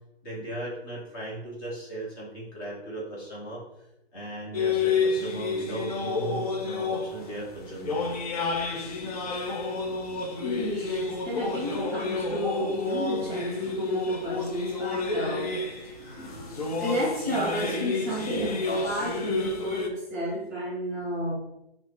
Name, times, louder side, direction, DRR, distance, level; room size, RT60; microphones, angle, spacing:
voice 1, 0.2-3.6 4.1-8.0, right 1 dB, 20° left, -6 dB, 0.9 m, -37 dB
sound 1, 4.5-19.9, left 3 dB, 40° left, 0.5 m, -30 dB
voice 2, 10.4-15.6 15.8-21.3, equal, 15° right, -6 dB, 0.7 m, -32 dB
3.4 x 2.0 x 3.2 m, 0.86 s
figure-of-eight pair, 145°, 32 cm